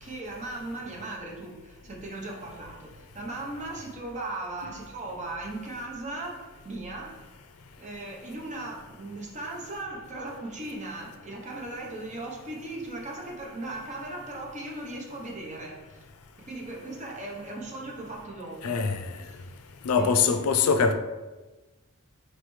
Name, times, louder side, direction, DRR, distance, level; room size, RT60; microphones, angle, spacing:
voice 1, 0.0-6.4 6.6-7.2 7.8-16.0 16.4-18.8 19.3-19.4 19.9-20.4, right 2 dB, 35° right, 0.8 m, -38 dB
voice 2, 18.6-19.0 19.9-20.9, left 5 dB, 85° left, 0.4 m, -22 dB
4.3 x 3.2 x 3.1 m
head